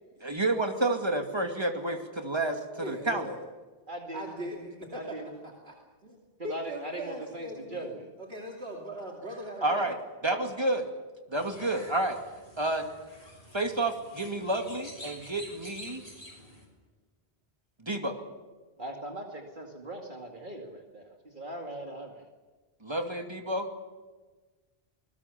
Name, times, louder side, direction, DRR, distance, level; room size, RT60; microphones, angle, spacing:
voice 1, 0.2-3.3 9.6-10.0 10.2-10.9 11.3-12.2 12.6-12.9 13.5-16.0 17.8-18.2 22.8-23.7, right 2 dB, 25° right, 4 dB, 2.5 m, -30 dB
voice 2, 2.8-3.4 4.1-5.2 5.4-5.8 6.0-6.2 6.4-9.9, equal, 70° right, 0 dB, 3.0 m, -40 dB
voice 3, 3.9-4.2 4.9-5.4 6.4-8.1 18.8-21.1 21.3-22.2, right 1 dB, 50° right, 2 dB, 2.5 m, -40 dB
sound 1, 11.3-16.7, left 1 dB, 70° left, 6.5 m, -49 dB
27.0 x 20.0 x 7.1 m, 1.3 s
omnidirectional pair, 1.1 m